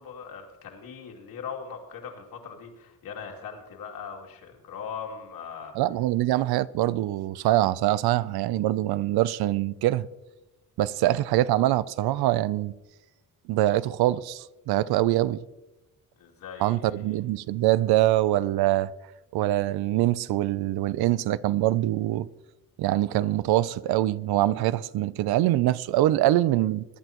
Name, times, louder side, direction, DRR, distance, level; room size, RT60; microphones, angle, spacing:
voice 1, 0.0-5.8 16.2-17.2, left 6 dB, 65° left, 2.7 m, -40 dB
voice 2, 5.8-10.1 10.8-12.7 13.5-15.4 16.6-18.9 19.3-22.3 22.8-26.8, right 15 dB, 80° right, 0.6 m, -24 dB
22.5 x 11.5 x 3.0 m
cardioid pair, 170°, 37 cm